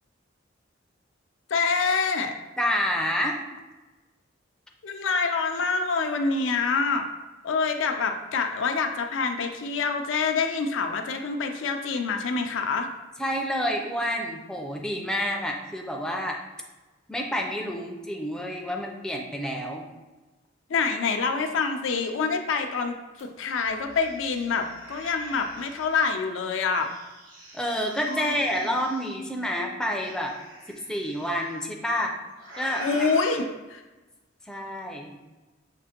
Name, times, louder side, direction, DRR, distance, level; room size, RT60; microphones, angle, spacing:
voice 1, 1.5-2.3 4.8-7.1 7.4-12.9 20.7-26.9 28.1-28.7 32.8-33.8, left 4 dB, 80° left, 5 dB, 0.4 m, -26 dB
voice 2, 2.6-3.4 13.2-16.4 17.1-19.9 27.5-30.3 30.7-32.1 32.6-32.9 34.5-35.2, equal, 5° left, 0 dB, 0.4 m, -28 dB
sound 1, 23.2-23.3 23.6-26.0 26.7-29.1 30.0-31.5 32.3-33.4, right 1 dB, 65° right, 1.5 m, -45 dB
5.9 x 2.5 x 2.8 m, 1.1 s
head